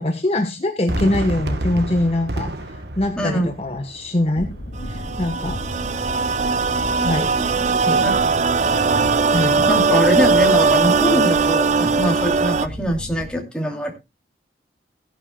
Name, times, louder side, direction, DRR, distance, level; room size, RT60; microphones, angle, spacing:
voice 1, 0.0-4.5 4.9-5.6 7.0-7.3 7.8-8.0 9.3-9.7, left 1 dB, 35° left, 4 dB, 1.2 m, -23 dB
Fireworks, 0.9-5.9, right 1 dB, 65° right, 1.2 m, -30 dB
voice 2, 3.2-3.5 8.0-8.3 9.3-13.9, equal, 5° left, 1 dB, 2.8 m, -23 dB
sound 1, 4.3-13.4, equal, 55° left, 4.6 m, -33 dB
sound 2, 4.8-12.7, right 4 dB, 40° right, 0.5 m, -19 dB
17.0 x 11.0 x 2.2 m, 0.25 s
head